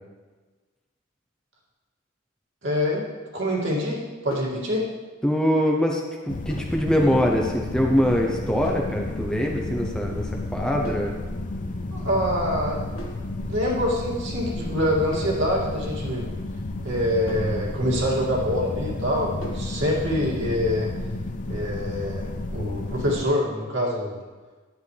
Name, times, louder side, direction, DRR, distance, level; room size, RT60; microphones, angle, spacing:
voice 1, 2.6-3.0 3.3-4.9 11.9-12.9 13.5-16.3 16.8-20.9 21.5-24.2, equal, 60° right, -4 dB, 2.5 m, -25 dB
sound 1, 4.3-4.6 6.5-6.8 8.6-8.9 10.8-11.2 13.0-13.3 15.1-15.4 17.3-17.6 19.4-19.7, right 1 dB, 75° left, 1.7 m, -39 dB
voice 2, 5.2-11.2, equal, 5° left, 0 dB, 0.7 m, -23 dB
sound 2, 6.3-23.2, left 2 dB, 40° left, 0.7 m, -32 dB
10.5 x 9.6 x 3.4 m, 1.3 s
head